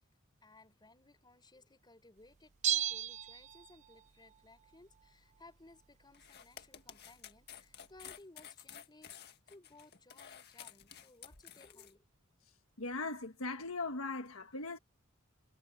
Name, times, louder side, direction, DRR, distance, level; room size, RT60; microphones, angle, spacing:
voice 1, 0.4-12.0, left 2 dB, 20° left, 4.3 m, -60 dB
Bell, 2.6-4.0 4.3-4.4, right 10 dB, 35° right, 0.3 m, -35 dB
sound 1, 6.1-11.9, left 9 dB, 50° left, 1.9 m, -52 dB
voice 2, 12.8-14.8, left 3 dB, 80° left, 1.4 m, -39 dB
head